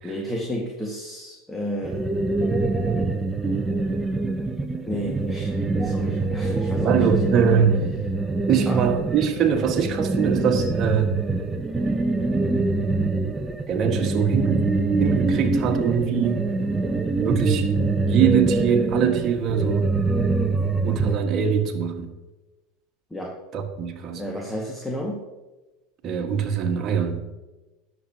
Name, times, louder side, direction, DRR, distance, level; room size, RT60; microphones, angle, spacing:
voice 1, 0.0-2.0 4.9-7.6 8.7-8.8 23.1-23.3 24.2-25.2, equal, 5° left, -1 dB, 2.0 m, -32 dB
sound 1, 1.8-21.2, right 3 dB, 15° right, 0.9 m, -24 dB
voice 2, 6.8-8.0 8.5-11.1 13.7-14.7 15.0-16.8 17.2-17.7 18.1-19.9 20.8-22.1 23.5-24.2 26.0-27.2, right 7 dB, 40° right, 4 dB, 1.8 m, -23 dB
19.0 x 7.5 x 3.0 m, 1.1 s
figure-of-eight pair, 80°, 0 cm